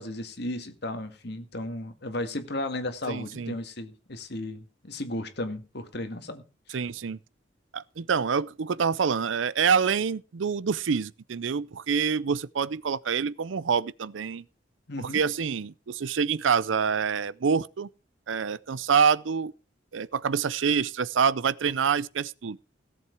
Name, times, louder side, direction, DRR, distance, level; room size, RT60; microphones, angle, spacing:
voice 1, 0.0-6.4 14.9-15.2, left 1 dB, 60° left, 2.1 m, -34 dB
voice 2, 3.1-3.6 6.7-7.2 7.7-14.4 15.0-17.9 18.3-19.5 19.9-22.6, right 6 dB, 85° right, 0.5 m, -26 dB
17.0 x 7.7 x 4.7 m
head